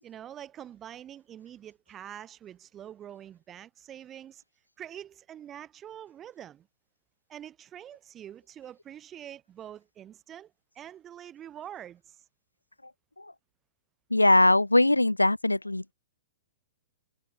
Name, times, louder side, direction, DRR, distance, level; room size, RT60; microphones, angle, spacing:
voice 1, 0.0-4.4 4.8-6.7 7.3-12.2, right 10 dB, 25° right, 6.2 m, -45 dB
voice 2, 14.1-15.9, left 2 dB, 90° left, 1.4 m, -21 dB
figure-of-eight pair, 110°, 0 cm